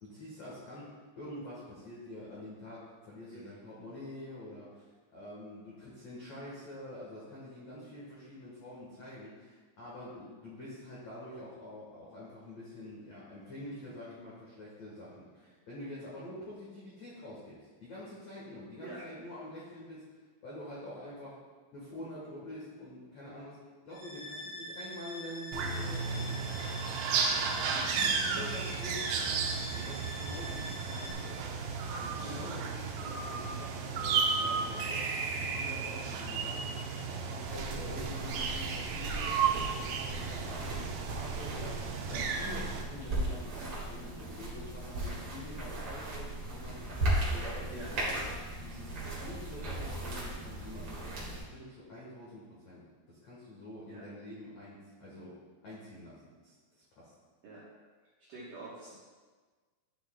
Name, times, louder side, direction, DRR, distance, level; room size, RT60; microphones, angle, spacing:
voice 1, 0.0-20.0 20.4-21.4 21.7-26.5 27.7-36.9 37.1-48.2 48.6-49.0 49.2-55.4 55.6-57.1, left 1 dB, 75° left, -7 dB, 1.6 m, -46 dB
sound 1, 23.9-31.1, equal, 45° left, 3.0 m, -44 dB
sound 2, 25.5-42.8, right 5 dB, 90° right, 2.3 m, -34 dB
voice 2, 27.3-28.0 28.4-28.6 32.2-32.4 47.7-47.9 53.9-54.0 57.4-57.6 58.2-59.0, right 2 dB, 70° right, -9 dB, 2.0 m, -46 dB
sound 3, 37.4-51.4, right 1 dB, 45° right, 1.9 m, -37 dB
12.0 x 6.3 x 2.3 m, 1.4 s
omnidirectional pair, 5.5 m